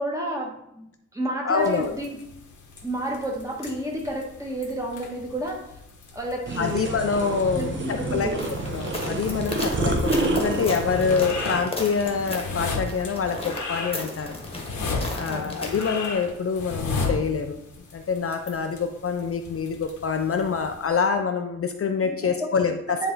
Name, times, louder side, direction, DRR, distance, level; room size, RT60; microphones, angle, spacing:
voice 1, 0.0-2.2 2.8-5.6 6.1-6.9 7.5-8.5 15.3-15.5 22.0-22.5 22.9-23.1, right 1 dB, 10° right, -1 dB, 1.2 m, -30 dB
voice 2, 1.4-2.0 6.6-8.3 8.7-14.4 15.1-17.6 17.9-23.1, left 5 dB, 50° left, 6 dB, 0.5 m, -26 dB
sound 1, 1.6-20.9, left 4 dB, 85° left, 1.2 m, -36 dB
sound 2, 6.5-11.6, right 2 dB, 40° right, 1.0 m, -28 dB
sound 3, 8.4-16.0, left 2 dB, 20° left, 1.2 m, -35 dB
10.0 x 3.3 x 3.9 m, 0.81 s
wide cardioid pair, 140°, 29 cm